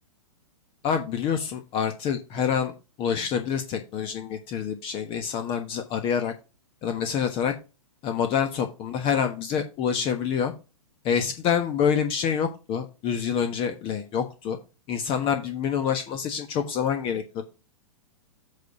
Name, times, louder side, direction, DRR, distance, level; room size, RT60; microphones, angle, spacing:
voice 1, 0.8-2.7 3.0-6.3 6.8-7.5 8.0-10.5 11.0-14.6 14.9-17.4, left 7 dB, 30° left, 6 dB, 1.2 m, -27 dB
8.1 x 4.2 x 4.9 m, 0.29 s
hypercardioid pair, 120°, 18 cm